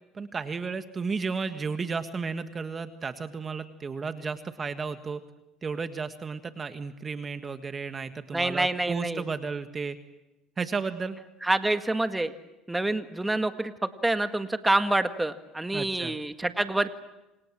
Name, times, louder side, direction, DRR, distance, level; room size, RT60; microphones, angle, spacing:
voice 1, 0.1-5.2 5.6-10.0 10.6-11.2 15.7-16.2, right 5 dB, 30° right, 9 dB, 1.6 m, -33 dB
voice 2, 8.3-9.2 11.4-12.3 12.7-16.9, right 2 dB, 10° right, 8 dB, 1.8 m, -27 dB
28.5 x 27.0 x 7.5 m, 0.99 s
supercardioid pair, 95°, 0 cm